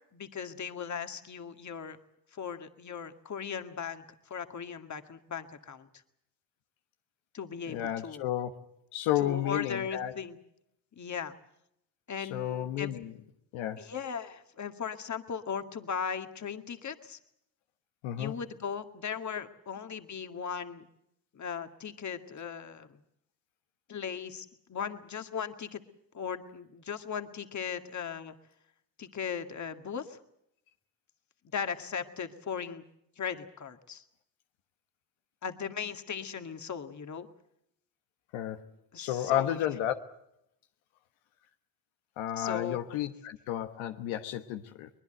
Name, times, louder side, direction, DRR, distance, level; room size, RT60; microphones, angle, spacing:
voice 1, 0.1-2.0 2.3-5.9 7.3-8.3 9.2-10.4 11.0-11.4 12.1-12.9 13.8-17.2 18.2-20.9 21.3-23.0 23.9-25.8 26.1-28.3 29.0-30.2 31.5-32.8 33.2-34.0 35.4-37.3 38.9-39.6 42.4-43.0, left 7 dB, 35° left, 8 dB, 2.0 m, -38 dB
voice 2, 7.7-8.6 8.9-10.1 12.2-13.1 13.5-13.9 18.0-18.3 38.3-38.7 39.0-40.0 42.2-44.9, left 12 dB, 80° left, 8 dB, 1.4 m, -32 dB
23.0 x 20.5 x 7.9 m, 0.79 s
supercardioid pair, 70°, 46 cm